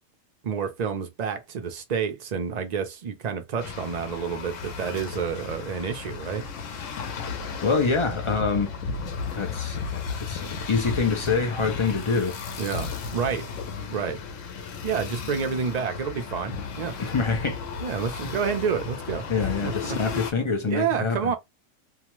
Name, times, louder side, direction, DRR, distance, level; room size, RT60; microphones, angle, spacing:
voice 1, 0.4-6.4 12.6-13.5 13.9-14.2 14.8-17.0 17.8-19.3 19.6-20.0 20.7-21.3, right 6 dB, 50° right, 0.5 m, -29 dB
sound 1, 3.6-20.3, left 5 dB, 70° left, 1.0 m, -34 dB
voice 2, 7.6-8.7 9.3-12.4 17.0-17.6 18.2-18.3 19.3-21.3, left 4 dB, 55° left, 0.3 m, -26 dB
2.8 x 2.2 x 3.0 m
omnidirectional pair, 1.4 m